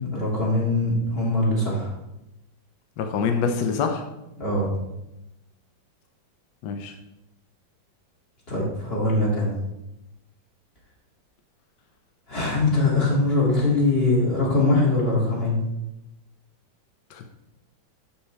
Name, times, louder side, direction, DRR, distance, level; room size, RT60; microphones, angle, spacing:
voice 1, 0.1-1.9 4.4-4.7 8.5-9.5 12.3-15.6, left 2 dB, 30° left, -5 dB, 2.8 m, -22 dB
voice 2, 3.0-4.0 6.6-6.9 17.1-17.3, left 5 dB, 70° left, 4 dB, 1.3 m, -25 dB
11.5 x 5.6 x 3.4 m, 0.91 s
omnidirectional pair, 2.1 m